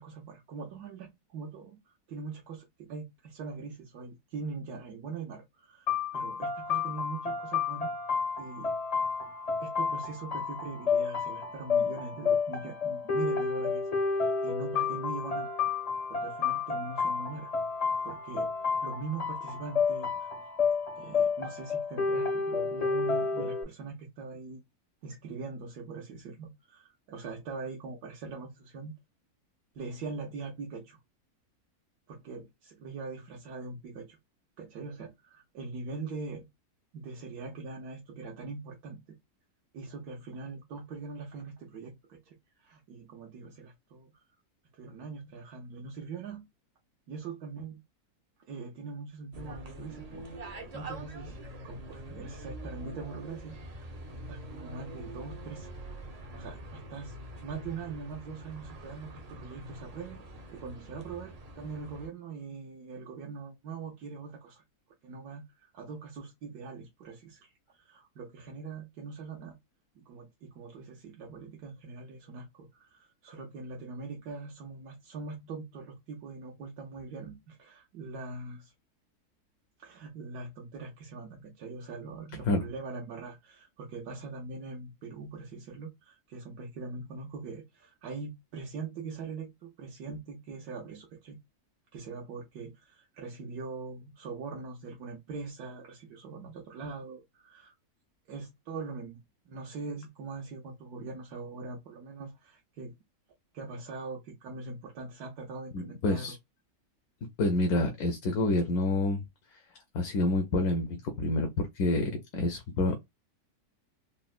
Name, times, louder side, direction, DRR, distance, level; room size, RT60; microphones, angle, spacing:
voice 1, 0.0-7.9 8.4-8.7 9.6-15.5 16.1-17.5 18.0-18.5 18.8-20.3 21.0-24.6 25.0-28.9 29.7-31.0 32.1-34.2 34.6-36.5 36.9-39.2 39.7-44.2 44.8-46.5 47.1-47.8 48.5-51.4 51.6-55.7 56.1-57.1 57.4-60.2 60.5-64.6 65.0-69.6 69.9-78.7 79.8-91.4 91.9-97.7 98.3-99.2 99.5-102.9 103.5-106.3, right 4 dB, 85° right, 1.2 m, -42 dB
sound 1, 5.9-23.6, left 5 dB, 50° left, 0.4 m, -30 dB
sound 2, 49.3-62.1, right 1 dB, 50° right, 0.4 m, -44 dB
voice 2, 105.7-106.4 107.4-109.2 109.9-113.0, left 2 dB, 80° left, 1.1 m, -28 dB
3.9 x 2.1 x 2.3 m
omnidirectional pair, 1.6 m